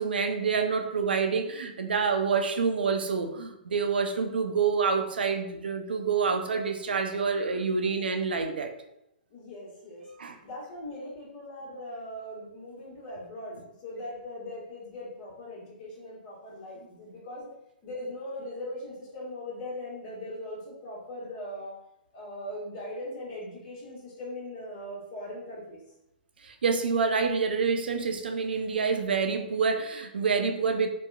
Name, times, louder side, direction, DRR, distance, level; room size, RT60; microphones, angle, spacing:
voice 1, 0.0-8.7 10.2-10.4 26.4-30.9, right 5 dB, 80° right, 6 dB, 0.4 m, -27 dB
voice 2, 9.3-10.1 10.4-17.5 17.8-21.8 22.1-25.8, left 1 dB, 45° left, -4 dB, 1.3 m, -40 dB
2.8 x 2.3 x 2.3 m, 0.84 s
hypercardioid pair, 125°, 5 cm